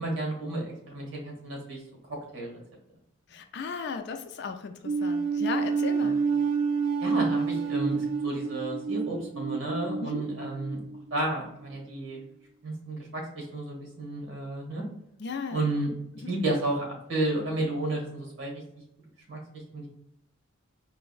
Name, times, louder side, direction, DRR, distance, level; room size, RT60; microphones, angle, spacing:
voice 1, 0.0-1.8 2.1-2.6 6.0-6.2 7.0-10.8 11.1-12.2 12.6-14.8 15.5-15.9 16.3-18.6 19.3-19.4 19.7-19.9, right 2 dB, 65° right, 0 dB, 1.4 m, -32 dB
voice 2, 3.3-6.2 10.0-10.3 15.2-15.6 16.2-16.3, left 5 dB, 55° left, 7 dB, 0.4 m, -36 dB
sound 1, 4.9-11.3, right 5 dB, 85° right, 0.4 m, -28 dB
4.5 x 2.1 x 2.4 m, 0.78 s
head